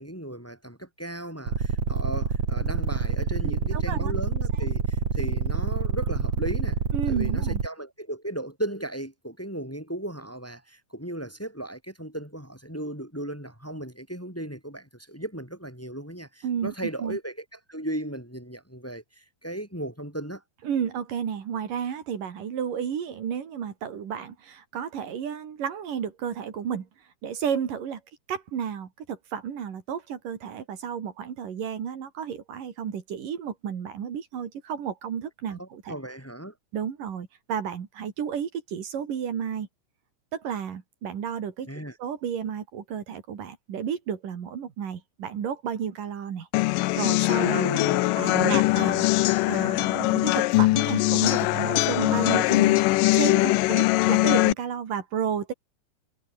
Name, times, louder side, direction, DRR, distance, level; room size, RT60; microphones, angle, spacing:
voice 1, 0.0-6.8 7.1-20.4 35.6-36.5 41.7-41.9 47.4-48.7, right 1 dB, 5° left, 4.0 m, -36 dB
sound 1, 1.5-7.7, right 5 dB, 60° right, 5.3 m, -26 dB
voice 2, 3.4-4.1 6.9-7.6 16.4-17.2 20.6-26.9 27.2-28.0 28.3-35.9 36.7-39.7 40.3-41.7 42.0-47.6 48.2-49.1 49.5-55.5, right 8 dB, 75° right, 4.2 m, -32 dB
sound 2, 46.5-54.5, left 20 dB, 90° left, 2.2 m, -22 dB
omnidirectional pair, 3.8 m